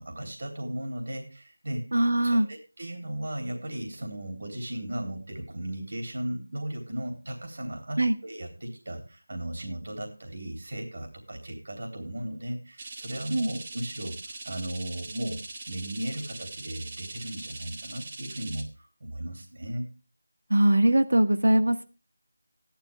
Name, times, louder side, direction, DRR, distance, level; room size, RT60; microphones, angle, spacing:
voice 1, 0.0-15.4 15.7-19.9, right 1 dB, 55° right, 2 dB, 3.3 m, -36 dB
voice 2, 1.9-2.5 8.0-8.1 13.3-13.5 20.5-21.8, right 1 dB, 75° right, 8 dB, 1.6 m, -21 dB
sound 1, 12.8-18.6, right 3 dB, 30° right, 1.4 m, -41 dB
14.5 x 11.5 x 3.5 m, 0.32 s
figure-of-eight pair, 170°, 0 cm